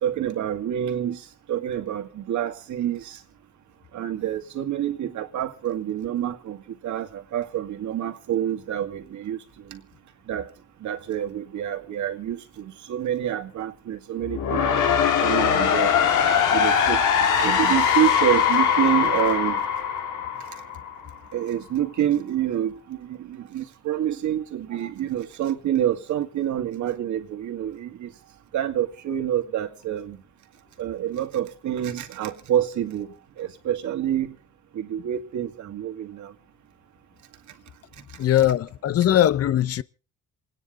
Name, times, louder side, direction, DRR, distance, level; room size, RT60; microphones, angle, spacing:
voice 1, 0.0-3.2 3.9-9.8 10.3-10.5 10.8-14.6 14.9-16.0 16.5-17.0 17.4-19.6 21.3-28.1 28.5-30.2 30.8-34.4 34.7-36.3, right 11 dB, 70° right, 2.2 m, -27 dB
sound 1, 14.2-21.1, left 7 dB, 85° left, 2.3 m, -21 dB
voice 2, 38.2-39.8, left 11 dB, 50° left, 0.7 m, -20 dB
28.0 x 9.8 x 3.9 m
cardioid pair, 90°, 30 cm